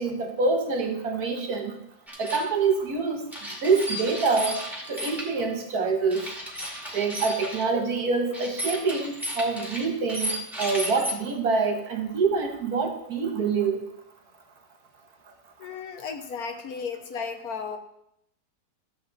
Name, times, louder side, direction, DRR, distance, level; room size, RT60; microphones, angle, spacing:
voice 1, 0.0-1.8 2.2-3.3 3.6-4.6 4.9-6.2 6.9-10.3 10.6-13.8, right 4 dB, 60° right, 4 dB, 1.7 m, -26 dB
sound 1, 2.1-2.5 3.3-5.3 6.1-7.6 8.3-11.1, equal, ahead, 2.0 m, -34 dB
voice 2, 15.6-17.8, left 5 dB, 65° left, 7 dB, 1.3 m, -34 dB
13.5 x 7.7 x 4.0 m, 0.79 s
omnidirectional pair, 1.8 m